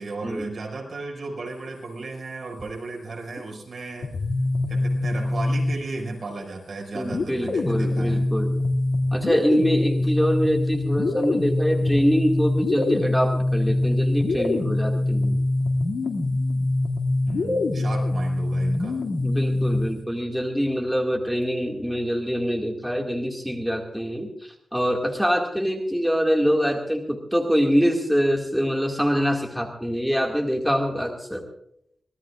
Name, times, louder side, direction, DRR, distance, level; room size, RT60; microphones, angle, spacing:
voice 1, 0.0-4.2 4.7-8.2 17.2-19.0, right 3 dB, 60° right, -1 dB, 5.7 m, -35 dB
sound 1, 4.0-6.2 7.1-20.0, left 2 dB, 90° left, 2.4 m, -24 dB
voice 2, 6.9-8.6 9.1-15.4 19.2-31.4, equal, ahead, 1 dB, 2.1 m, -24 dB
25.0 x 18.5 x 2.5 m, 0.73 s
wide cardioid pair, 130°, 0 cm